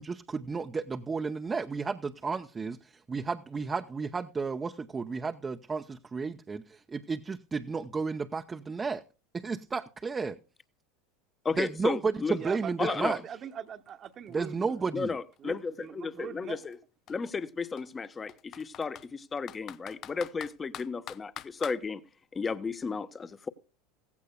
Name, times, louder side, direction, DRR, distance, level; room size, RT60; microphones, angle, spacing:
voice 1, 0.0-9.0 9.3-10.4 11.6-13.2 14.3-15.1, right 4 dB, 20° right, 0.7 m, -33 dB
voice 2, 11.4-12.4 12.8-13.1 14.9-16.8 17.1-22.0 22.3-23.5, left 5 dB, 25° left, 1.0 m, -34 dB
voice 3, 12.3-14.8 15.4-16.6, right 8 dB, 40° right, 1.1 m, -41 dB
Computer keyboard, 13.5-13.6 13.9-15.8 16.6-16.8 17.1-17.2 17.8-19.1 19.5-21.8, left 12 dB, 45° left, 0.6 m, -45 dB
16.0 x 15.5 x 2.3 m
hypercardioid pair, 85°, 0 cm